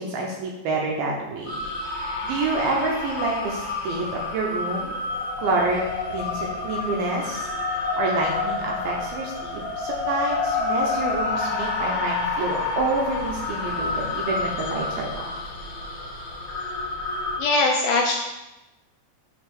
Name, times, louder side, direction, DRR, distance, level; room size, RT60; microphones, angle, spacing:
voice 1, 0.0-1.5 2.2-4.9 5.4-15.1, right 3 dB, 75° right, 0 dB, 2.4 m, -28 dB
sound 1, 1.5-17.4, left 3 dB, 50° left, 2.3 m, -29 dB
voice 2, 17.4-18.1, left 3 dB, 80° left, 0 dB, 2.3 m, -20 dB
7.5 x 4.0 x 6.0 m, 1.0 s
omnidirectional pair, 5.0 m